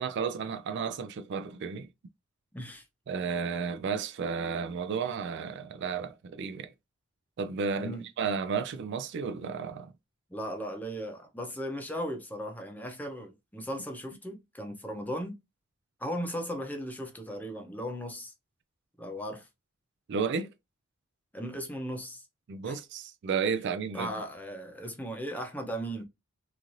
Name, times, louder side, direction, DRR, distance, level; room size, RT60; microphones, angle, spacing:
voice 1, 0.0-1.9 3.1-6.7 7.4-9.9 20.1-20.5 22.5-24.1, right 5 dB, 55° right, 0.3 m, -32 dB
voice 2, 2.5-2.8 7.8-8.1 10.3-15.4 16.0-18.3 19.0-19.5 21.3-22.2 22.6-22.8 23.9-26.0, equal, 10° left, 0.6 m, -37 dB
3.0 x 2.5 x 2.6 m
head